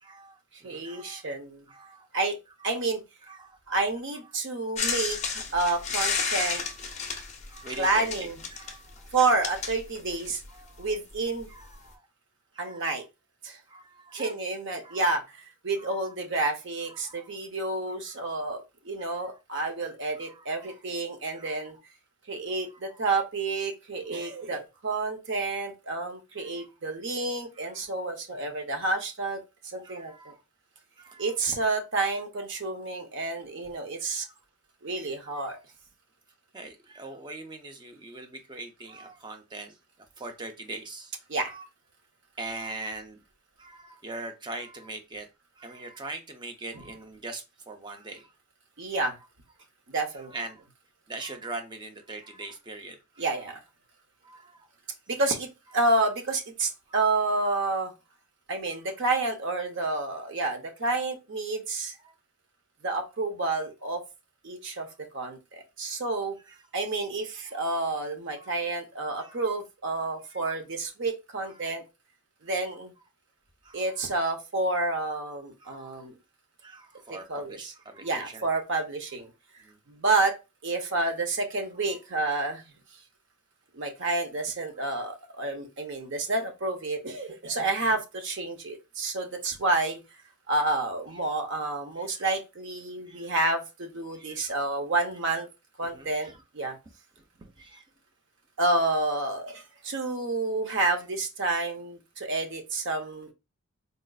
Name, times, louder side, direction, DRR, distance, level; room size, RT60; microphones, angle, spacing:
voice 1, 0.0-1.3 1.7-2.1 2.6-2.8 3.2-3.6 4.8-5.1 5.6-5.9 6.6-7.0 7.5-9.1 10.5-10.9 11.5-12.0 12.5-12.9 13.7-14.3 14.8-15.1 15.8-16.1 16.9-17.3 18.0-18.4 19.0-19.4 20.2-20.7 21.3-21.6 22.7-23.0 26.4-26.7 27.6-27.8 28.4-28.6 29.8-30.4 31.0-31.3 34.0-34.4 35.2-35.6 36.5-39.8 40.2-41.2 41.5-41.7 42.4-43.2 43.6-45.3 45.6-48.3 50.1-50.6 51.1-53.3 54.2-54.7 56.9-57.0 62.0-62.1 66.5-66.6 67.4-67.7 68.4-68.5 69.2-69.4 70.3-70.5 71.4-71.7 73.6-74.1 74.7-74.9 75.6-76.1 76.6-78.4 79.6-79.8 84.8-84.9 86.0-86.1 91.1-91.3 92.0-92.3 93.0-93.3 94.1-94.6 95.8-96.4 97.2-97.8, right 2 dB, 20° right, 0.5 m, -43 dB
voice 2, 0.6-1.7 2.1-2.3 2.6-3.0 3.7-6.6 7.8-8.4 9.1-10.4 10.8-11.5 12.6-13.0 13.4-13.6 14.1-21.8 22.3-30.3 31.2-34.2 34.8-35.6 41.3-41.5 48.8-49.2 49.9-50.3 53.2-53.6 55.1-57.9 58.5-62.0 62.8-64.0 64.4-64.9 65.1-66.4 66.7-71.8 72.4-72.9 73.7-76.1 77.1-77.7 78.0-79.3 79.9-80.4 80.6-82.6 83.7-90.0 90.5-95.5 95.8-96.3 96.5-96.8 98.6-103.3, right 3 dB, 55° right, 0.7 m, -29 dB
sound 1, 4.8-10.5 11.4-11.5, left 5 dB, 30° left, 0.5 m, -32 dB
4.0 x 2.4 x 2.3 m
head